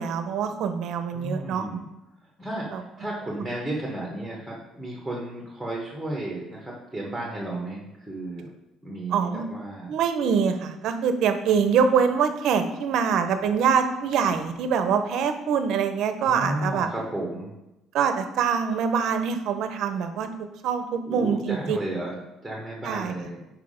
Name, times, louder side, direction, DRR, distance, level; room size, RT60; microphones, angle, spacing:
voice 1, 0.0-1.7 2.7-2.8 9.1-9.5 9.9-16.9 17.9-21.8 22.8-23.1, right 6 dB, 55° right, 8 dB, 0.6 m, -24 dB
voice 2, 1.1-1.9 2.4-8.5 8.8-9.9 16.3-17.5 21.0-23.5, right 1 dB, ahead, -3 dB, 1.0 m, -33 dB
5.9 x 4.7 x 5.0 m, 0.94 s
cardioid pair, 170°, 0 cm